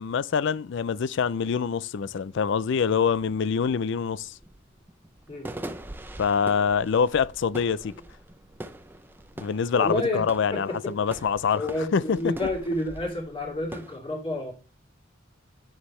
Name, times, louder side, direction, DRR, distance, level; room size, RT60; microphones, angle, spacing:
voice 1, 0.0-4.3 6.2-7.9 9.4-12.3, left 6 dB, 60° left, 0.4 m, -25 dB
sound 1, 3.2-14.0, right 1 dB, 10° right, 0.5 m, -43 dB
voice 2, 9.8-10.2 10.5-10.9 11.5-14.5, left 1 dB, 25° left, 2.5 m, -30 dB
8.9 x 7.0 x 3.2 m
head